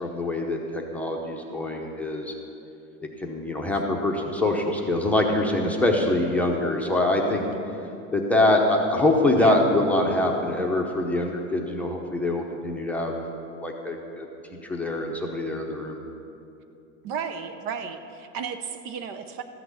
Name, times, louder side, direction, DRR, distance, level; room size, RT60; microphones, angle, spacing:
voice 1, 0.0-2.3 3.2-7.4 8.1-13.2 13.6-14.3 14.6-16.0, left 1 dB, 5° left, -1 dB, 0.8 m, -24 dB
voice 2, 17.0-19.4, right 6 dB, 50° right, 8 dB, 0.8 m, -33 dB
13.5 x 5.9 x 8.2 m, 2.7 s
supercardioid pair, 150°, 37 cm